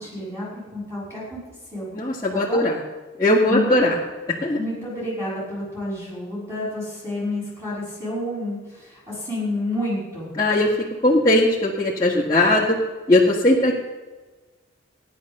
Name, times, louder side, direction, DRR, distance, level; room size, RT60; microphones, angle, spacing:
voice 1, 0.0-1.4 1.7-1.9 2.3-2.6 3.5-3.8 4.5-10.3, left 1 dB, 15° right, -7 dB, 6.3 m, -29 dB
voice 2, 2.0-2.7 3.2-3.9 4.4-4.6 10.4-10.7 11.0-12.8 13.1-13.8, left 1 dB, 20° left, -7 dB, 1.9 m, -18 dB
15.5 x 10.5 x 6.7 m, 1.2 s
head